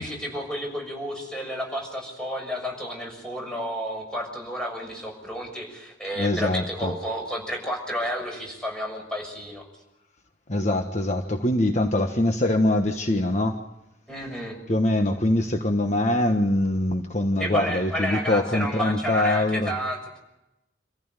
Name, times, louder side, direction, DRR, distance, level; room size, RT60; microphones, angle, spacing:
voice 1, 0.0-9.6 14.1-14.6 17.4-20.2, equal, 5° left, 1 dB, 6.6 m, -31 dB
voice 2, 6.2-6.9 10.5-13.6 14.7-19.7, left 1 dB, 35° left, 5 dB, 1.3 m, -23 dB
28.0 x 15.0 x 9.1 m, 0.95 s
head